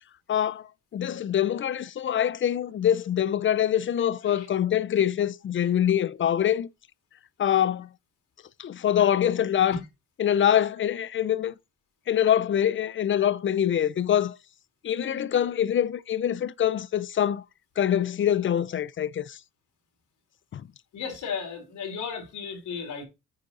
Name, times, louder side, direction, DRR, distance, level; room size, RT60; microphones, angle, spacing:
voice 1, 0.3-6.7 7.4-7.9 8.6-9.8 10.2-11.5 12.1-14.4 14.8-17.4 17.8-19.4 20.5-20.6, left 10 dB, 40° left, 0.5 m, -24 dB
voice 2, 20.9-23.0, left 6 dB, 80° left, 3.8 m, -35 dB
9.2 x 5.2 x 4.0 m
cardioid pair, 90°, 30 cm